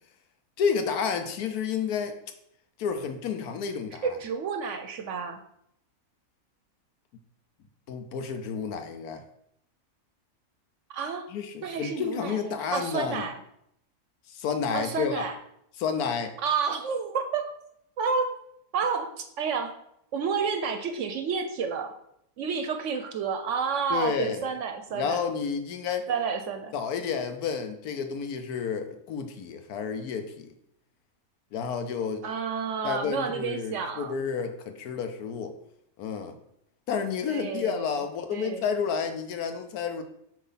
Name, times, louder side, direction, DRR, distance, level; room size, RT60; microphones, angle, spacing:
voice 1, 0.6-2.2 2.8-4.2 7.9-9.2 11.3-13.2 14.3-15.2 15.8-16.4 23.9-24.4 24.9-26.1 26.7-30.5 31.5-32.2 32.8-35.6 36.0-36.3 36.9-40.0, left 6 dB, 85° left, 8 dB, 1.2 m, -30 dB
voice 2, 4.0-5.4 10.9-11.3 11.6-13.4 14.7-15.3 16.4-17.5 18.0-18.3 18.7-19.8 20.1-21.9 22.4-25.2 26.1-26.7 32.2-34.1 37.3-37.9 38.3-38.6, right 5 dB, 65° right, 6 dB, 0.8 m, -30 dB
7.5 x 2.7 x 5.6 m, 0.75 s
omnidirectional pair, 1.6 m